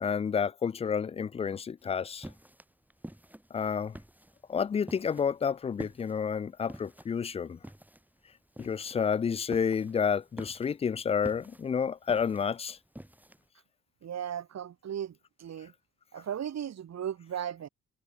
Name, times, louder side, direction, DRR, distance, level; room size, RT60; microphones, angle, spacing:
voice 1, 0.0-2.3 3.5-3.9 4.5-7.6 8.6-12.8, left 6 dB, 20° left, 0.3 m, -30 dB
sound 1, 1.8-13.5, right 1 dB, 5° right, 7.0 m, -48 dB
voice 2, 14.0-15.7 16.1-17.7, right 9 dB, 60° right, 5.1 m, -36 dB
cardioid pair, 90°, 30 cm